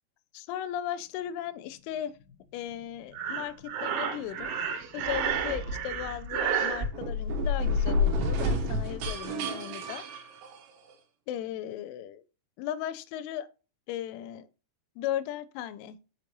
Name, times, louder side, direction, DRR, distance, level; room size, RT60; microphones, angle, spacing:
voice 1, 0.3-2.1 2.5-4.6 4.9-10.0 11.3-12.2 12.6-13.5 13.9-14.5 15.0-16.0, left 11 dB, 85° left, 2.9 m, -36 dB
Explosion, 1.2-7.3, left 2 dB, 55° left, 2.3 m, -48 dB
Breathing, 3.1-6.9, right 7 dB, 90° right, 3.5 m, -31 dB
sound 1, 6.9-10.9, left 2 dB, 70° right, 2.3 m, -29 dB
6.3 x 5.2 x 3.0 m
omnidirectional pair, 5.6 m